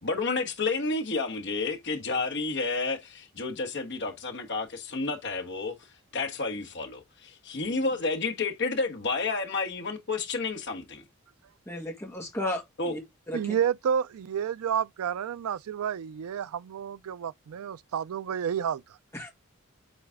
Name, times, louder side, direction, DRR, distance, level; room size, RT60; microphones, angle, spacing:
voice 1, 0.0-5.8 6.1-11.0 12.8-13.0, left 3 dB, 55° left, 1.3 m, -30 dB
voice 2, 11.7-13.0 13.3-13.5 19.1-19.3, left 1 dB, 10° left, 1.7 m, -34 dB
voice 3, 13.3-19.0, right 8 dB, 80° right, 0.3 m, -30 dB
7.7 x 4.0 x 3.6 m
head